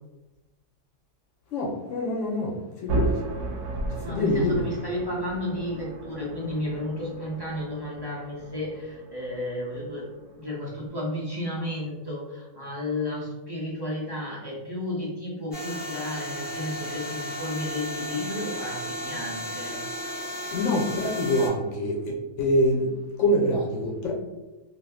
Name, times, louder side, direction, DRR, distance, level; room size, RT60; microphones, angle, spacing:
voice 1, 1.5-2.5 2.8-3.2 3.8-4.7 20.5-22.9 23.2-24.1, left 1 dB, 85° left, -1 dB, 1.0 m, -25 dB
sound 1, 2.9-10.9, right 3 dB, 90° right, 1.0 m, -35 dB
voice 2, 4.0-10.1 10.3-19.8, left 1 dB, 30° right, -6 dB, 0.5 m, -33 dB
sound 2, 15.5-21.5, equal, 10° left, 1.2 m, -34 dB
2.7 x 2.4 x 3.4 m, 1.1 s
omnidirectional pair, 1.2 m